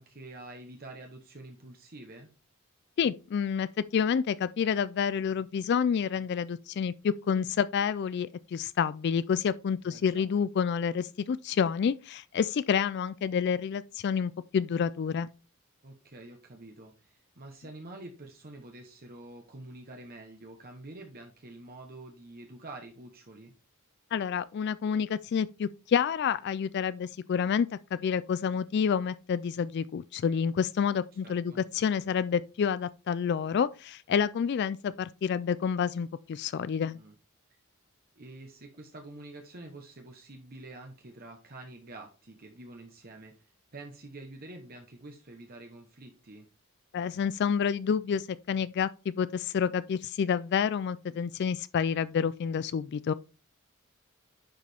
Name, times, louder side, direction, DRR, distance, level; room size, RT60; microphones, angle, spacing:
voice 1, 0.0-2.3 9.8-10.3 15.8-23.5 31.2-31.6 36.9-37.1 38.1-46.5, right 2 dB, 45° right, 1.1 m, -47 dB
voice 2, 3.0-15.3 24.1-37.0 46.9-48.9 49.2-53.1, left 7 dB, 50° left, 0.3 m, -29 dB
10.5 x 4.9 x 3.4 m
head